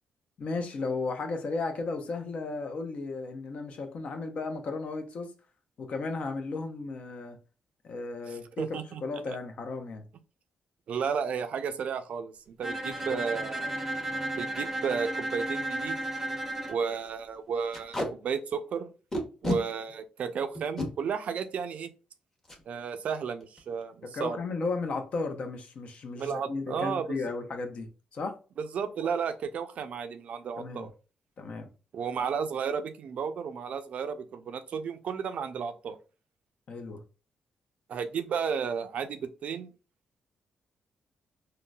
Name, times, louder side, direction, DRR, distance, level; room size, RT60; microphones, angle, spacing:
voice 1, 0.4-5.3 5.8-7.4 7.8-8.7 9.0-10.1 12.9-13.2 24.1-28.4 30.6-30.9 31.4-31.7 36.7-37.0, left 3 dB, 60° left, 0.6 m, -34 dB
voice 2, 8.3-9.0 10.9-12.3 12.6-13.7 14.3-16.0 16.7-18.9 19.4-21.9 22.7-24.4 26.2-27.1 28.6-30.9 31.9-36.0 37.9-39.7, right 6 dB, 65° right, 0.4 m, -33 dB
Bowed string instrument, 12.6-16.8, right 1 dB, 15° right, 0.6 m, -33 dB
Packing tape duct tape, 14.1-14.3 14.7-14.8 15.0-15.2 15.6-15.7 16.0-16.2 16.5-16.7 17.7-18.1 19.1-19.6 20.5-20.9 22.4-22.6 23.0-23.1 23.4-23.8, left 1 dB, 20° left, 0.9 m, -31 dB
3.7 x 2.1 x 2.3 m
cardioid pair, 95°, 2 cm